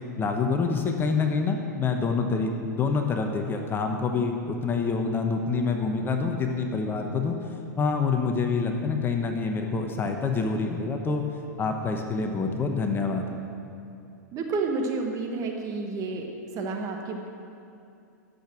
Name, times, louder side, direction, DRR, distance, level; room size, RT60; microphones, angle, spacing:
voice 1, 0.2-7.3 7.8-11.2 11.6-13.3, left 4 dB, 20° left, 4 dB, 1.0 m, -26 dB
voice 2, 14.3-16.3 16.5-17.3, right 3 dB, 35° right, 2 dB, 1.2 m, -30 dB
12.0 x 6.8 x 6.0 m, 2.6 s
hypercardioid pair, 110°, 10 cm